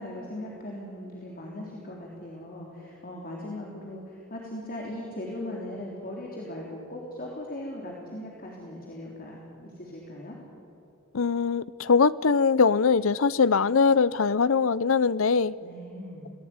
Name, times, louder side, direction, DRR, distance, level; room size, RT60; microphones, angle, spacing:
voice 1, 0.0-10.4 15.6-16.3, left 1 dB, 45° left, 3.7 m, -39 dB
voice 2, 11.1-15.5, left 5 dB, 75° left, 0.6 m, -22 dB
26.5 x 18.5 x 9.7 m
head